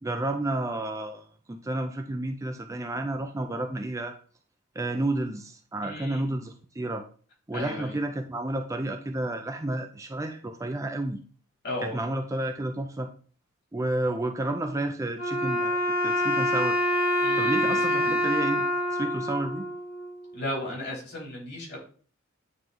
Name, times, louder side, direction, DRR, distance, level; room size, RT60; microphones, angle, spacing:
voice 1, 0.0-4.1 4.8-7.0 7.5-11.2 11.8-13.1 13.7-16.9 17.4-18.6 18.9-19.7, right 2 dB, 15° right, 5 dB, 0.4 m, -31 dB
voice 2, 5.8-6.3 7.5-7.9 11.6-12.0 17.2-18.1 20.3-21.8, left 1 dB, 50° left, -3 dB, 3.1 m, -35 dB
Wind instrument woodwind instrument, 15.2-20.3, equal, 75° left, 2.9 m, -26 dB
9.1 x 3.1 x 3.8 m, 0.42 s
head